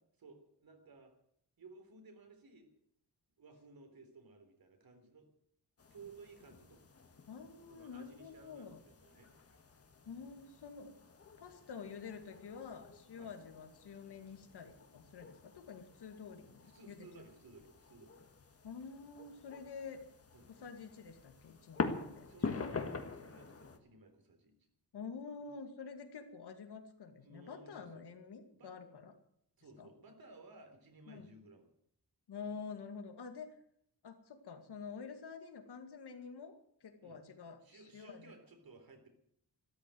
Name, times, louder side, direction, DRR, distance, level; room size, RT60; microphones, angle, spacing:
voice 1, 0.2-1.1 1.6-2.7 3.4-5.3 5.9-6.8 7.7-9.3 13.2-13.4 16.6-18.2 20.3-20.5 22.2-24.7 27.2-28.0 28.5-28.7 29.6-31.7 37.0-37.2 37.6-39.1, right 3 dB, 60° right, 5 dB, 3.7 m, -58 dB
sound 1, 5.8-23.8, left 4 dB, 35° left, 1.6 m, -46 dB
voice 2, 7.3-8.8 10.1-11.0 11.4-17.3 18.6-20.0 20.5-22.8 24.9-29.1 29.8-29.9 31.1-31.3 32.3-33.5 34.0-38.3, left 5 dB, 75° left, 6 dB, 2.4 m, -48 dB
13.5 x 13.5 x 7.9 m, 0.68 s
wide cardioid pair, 150°, 40 cm